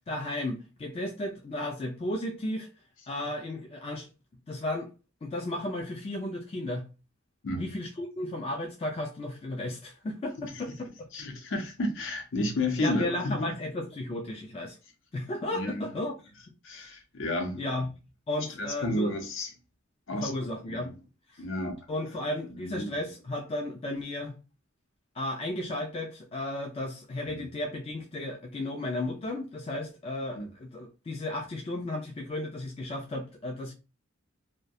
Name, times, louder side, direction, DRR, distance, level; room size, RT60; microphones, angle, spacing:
voice 1, 0.1-2.7 3.1-4.1 4.5-4.9 5.2-6.9 7.6-11.1 12.8-14.8 15.1-16.1 16.7-16.9 17.6-17.9 18.3-19.1 20.2-20.9 21.3-21.4 21.9-24.3 25.2-33.7, left 1 dB, 30° left, 0.3 m, -34 dB
voice 2, 11.1-13.5 15.5-15.8 16.6-17.6 18.6-19.5 20.1-20.9 21.4-21.9 22.5-22.9 27.3-27.5 30.3-30.5, left 1 dB, 65° left, 0.6 m, -32 dB
2.3 x 2.1 x 2.6 m
head